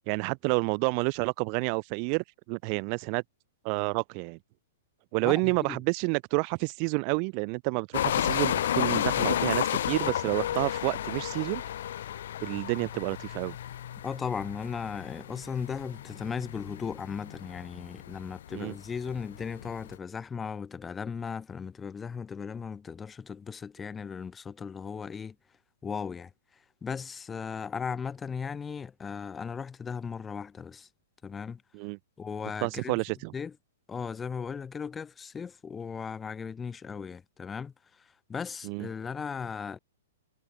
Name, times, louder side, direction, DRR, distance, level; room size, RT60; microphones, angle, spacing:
voice 1, 0.1-3.2 3.6-4.4 5.1-11.6 12.4-13.6 18.5-18.7 31.7-32.0 32.6-33.3 38.6-38.9, right 40 dB or more, 40° right, 0.7 m, -29 dB
voice 2, 5.2-5.8 14.0-25.4 25.8-30.9 31.2-31.6 32.2-33.0 33.3-33.6 33.9-39.8, left 6 dB, 15° left, 3.0 m, -37 dB
Content warning, 7.9-19.9, left 11 dB, 65° left, 0.7 m, -32 dB
hypercardioid pair, 120°, 0 cm